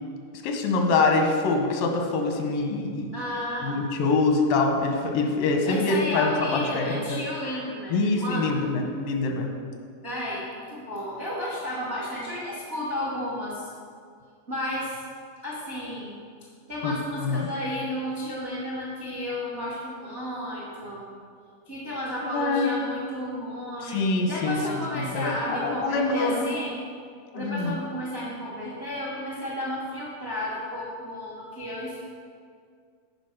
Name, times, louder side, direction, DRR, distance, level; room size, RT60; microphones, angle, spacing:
voice 1, 0.4-3.1 3.6-7.2 7.9-9.5 16.8-17.5 22.3-22.7 23.8-26.5 27.3-27.8, left 3 dB, 90° left, 3 dB, 2.6 m, -25 dB
voice 2, 3.1-3.8 5.7-8.6 10.0-13.7 14.5-15.0 15.4-16.2 16.7-21.1 21.7-24.0 24.3-26.7 27.3-32.0, left 1 dB, 65° right, -6 dB, 0.6 m, -32 dB
8.7 x 5.1 x 5.9 m, 2.1 s
omnidirectional pair, 3.8 m